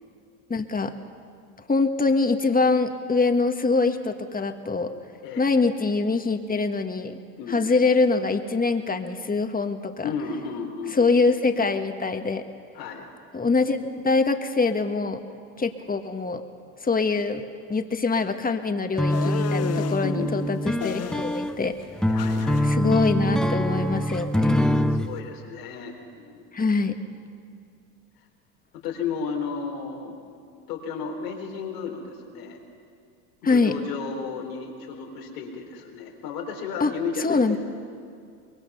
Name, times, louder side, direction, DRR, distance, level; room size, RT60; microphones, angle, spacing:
voice 1, 0.5-0.9 1.7-4.9 5.4-7.2 7.5-10.1 10.9-12.4 13.3-15.2 15.6-16.4 16.8-17.4 17.7-21.8 22.6-24.6 26.5-26.9 33.4-33.7 36.8-36.9 37.2-37.6, left 4 dB, 20° left, 7 dB, 1.6 m, -24 dB
voice 2, 5.2-5.5 7.4-7.7 10.0-11.3 12.7-13.1 20.0-20.4 22.1-22.7 24.9-26.5 28.8-30.2 30.7-32.6 33.4-37.5, left 5 dB, 85° left, 0 dB, 4.0 m, -33 dB
sound 1, 19.0-25.1, equal, ahead, 0.8 m, -24 dB
sound 2, 19.1-20.1 20.8-21.6 21.8-22.6, left 12 dB, 35° left, 0.6 m, -33 dB
24.0 x 22.0 x 5.6 m, 2.3 s
hypercardioid pair, 80°, 46 cm